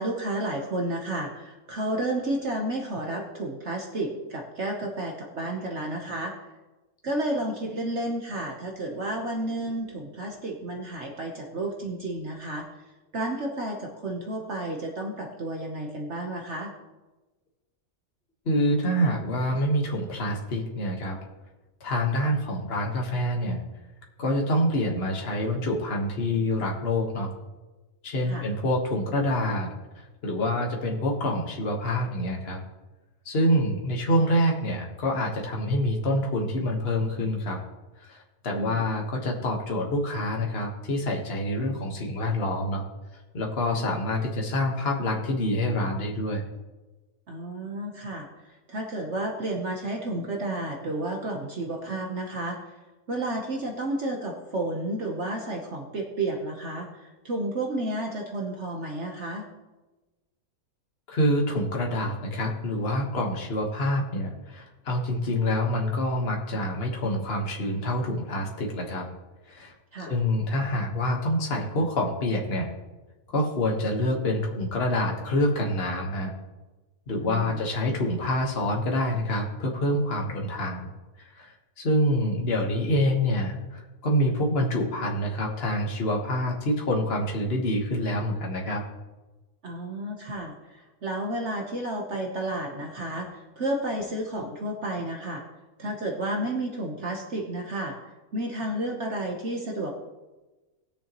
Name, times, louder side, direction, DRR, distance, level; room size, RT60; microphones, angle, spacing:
voice 1, 0.0-6.3 7.0-12.7 13.1-16.7 28.3-28.4 38.5-38.8 47.3-48.3 48.7-52.6 53.1-59.5 69.9-70.1 77.1-77.6 89.6-95.4 95.8-98.0 98.3-99.9, right 1 dB, 50° right, 1 dB, 1.4 m, -31 dB
voice 2, 18.4-21.2 21.8-23.6 24.2-27.3 28.0-29.7 30.2-32.6 33.2-37.6 38.1-42.8 43.3-46.4 61.1-69.1 69.5-69.7 70.1-72.7 73.3-76.3 77.1-80.9 81.4-88.8, left 1 dB, 45° left, 0 dB, 1.6 m, -26 dB
19.5 x 7.0 x 3.0 m, 1.2 s
omnidirectional pair, 1.6 m